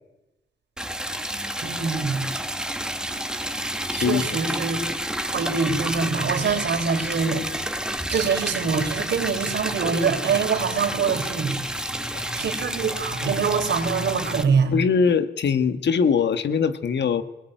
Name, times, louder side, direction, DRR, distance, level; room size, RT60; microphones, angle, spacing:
Liquid, 0.8-14.4, right 1 dB, 5° right, 2.2 m, -30 dB
voice 1, 1.6-2.2 3.9-4.9 5.2-7.4 8.1-11.8 12.3-14.8, right 5 dB, 70° right, 3 dB, 4.5 m, -24 dB
voice 2, 3.9-4.2 11.9-12.2 14.7-17.2, left 6 dB, 70° left, 11 dB, 1.7 m, -22 dB
24.5 x 20.5 x 9.3 m, 1.0 s
cardioid pair, 70°, 19 cm